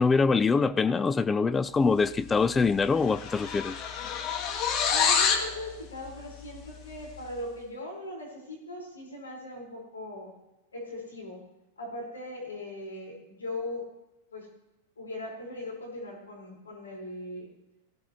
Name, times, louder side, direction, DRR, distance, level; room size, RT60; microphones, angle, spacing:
voice 1, 0.0-3.8, left 4 dB, 15° left, 0.4 m, -24 dB
sound 1, 2.3-2.6 2.8-5.5, left 6 dB, 40° left, 1.8 m, -27 dB
voice 2, 4.9-10.3 10.7-11.4 11.8-13.8 14.3-14.5 15.0-17.5, left 1 dB, 90° left, 4.9 m, -39 dB
17.5 x 15.5 x 3.1 m
hypercardioid pair, 100°, 0 cm